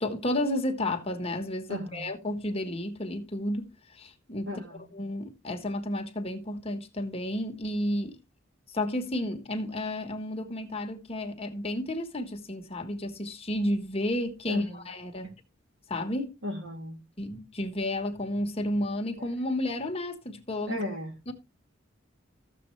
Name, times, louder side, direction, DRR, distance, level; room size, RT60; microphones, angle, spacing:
voice 1, 0.0-4.5 4.9-8.1 8.7-15.3 15.9-16.3 17.2-20.8 21.3-21.4, left 1 dB, 30° left, 1.4 m, -32 dB
voice 2, 1.7-2.0 4.5-4.9 14.5-14.8 15.2-15.3 16.4-17.0 20.7-21.1, left 1 dB, 70° right, 2.6 m, -35 dB
14.0 x 7.5 x 3.2 m
head